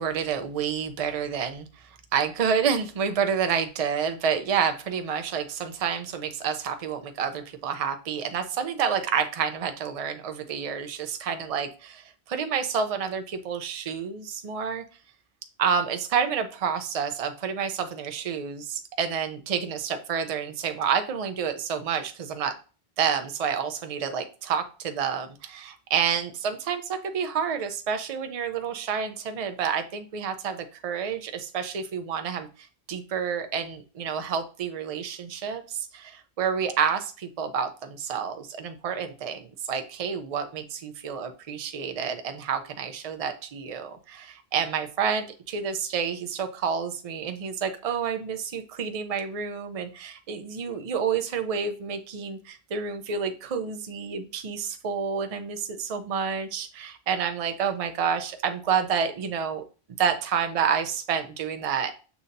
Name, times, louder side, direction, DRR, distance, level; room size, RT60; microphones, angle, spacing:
voice 1, 0.0-14.8 15.6-22.5 23.0-59.6 60.0-62.0, right 7 dB, 45° right, 8 dB, 0.6 m, -29 dB
6.9 x 2.7 x 2.6 m, 0.35 s
omnidirectional pair, 1.1 m